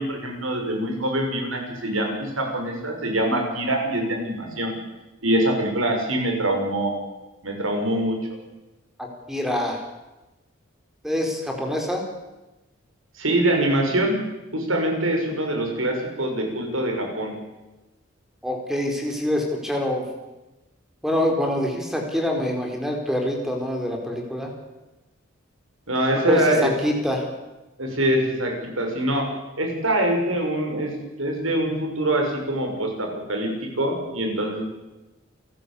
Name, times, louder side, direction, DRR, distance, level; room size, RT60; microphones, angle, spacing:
voice 1, 0.0-4.8 5.2-7.0 7.4-8.2 13.1-14.2 14.5-17.4 25.9-26.7 27.8-29.3 29.6-34.6, right 1 dB, 85° right, 3 dB, 6.5 m, -24 dB
voice 2, 9.0-9.8 11.0-12.0 18.4-20.1 21.0-24.5 26.3-27.3, left 1 dB, ahead, 2 dB, 4.5 m, -25 dB
28.5 x 14.5 x 8.5 m, 1.1 s
head